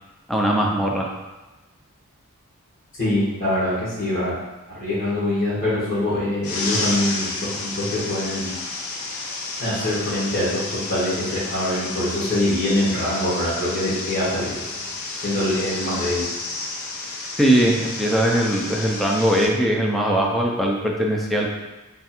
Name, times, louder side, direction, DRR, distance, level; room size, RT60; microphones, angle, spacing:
voice 1, 0.3-1.1 17.4-21.5, right 1 dB, ahead, -2 dB, 0.4 m, -20 dB
voice 2, 3.0-4.3 4.7-8.5 9.6-14.6 15.2-16.2, left 1 dB, 50° left, -12 dB, 1.4 m, -24 dB
sound 1, 6.4-19.5, left 3 dB, 70° left, 0.6 m, -31 dB
3.4 x 2.4 x 4.2 m, 1.1 s
head